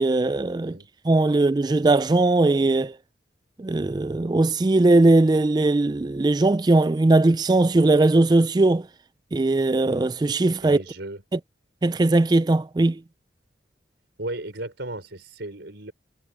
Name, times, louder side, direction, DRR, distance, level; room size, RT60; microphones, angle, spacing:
voice 1, 0.0-0.8 1.0-3.0 3.6-8.9 9.3-10.8 11.3-11.4 11.8-13.0, right 2 dB, 20° right, 0.3 m, -19 dB
voice 2, 10.6-11.2 14.2-15.9, right 2 dB, 70° right, 4.2 m, -35 dB
head